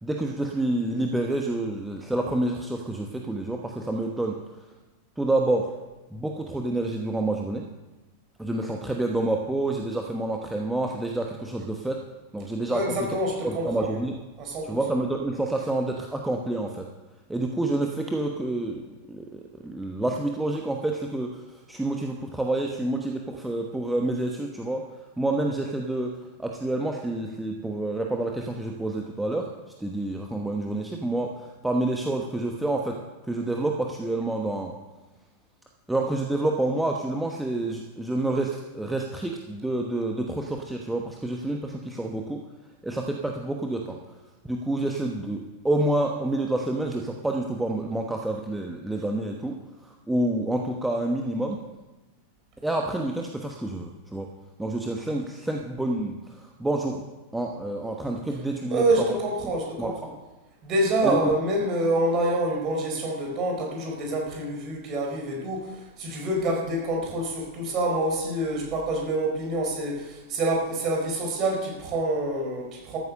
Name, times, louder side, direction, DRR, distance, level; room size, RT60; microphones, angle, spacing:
voice 1, 0.0-4.3 5.2-5.7 6.1-7.6 8.4-12.0 12.3-12.9 13.4-14.2 14.6-16.8 17.3-18.8 19.1-21.4 21.7-24.8 25.2-26.1 26.4-29.5 29.8-32.9 33.3-34.7 35.9-42.4 42.8-44.0 44.4-49.6 49.8-51.6 52.6-54.3 54.6-57.0 57.3-59.2 59.8-60.2 61.0-61.2, right 2 dB, 5° right, 1 dB, 1.2 m, -28 dB
voice 2, 12.7-14.0 14.4-14.9 58.7-60.1 60.6-73.0, right 1 dB, 35° right, 0 dB, 4.3 m, -27 dB
13.5 x 9.7 x 6.5 m, 1.1 s
figure-of-eight pair, 90°, 0 cm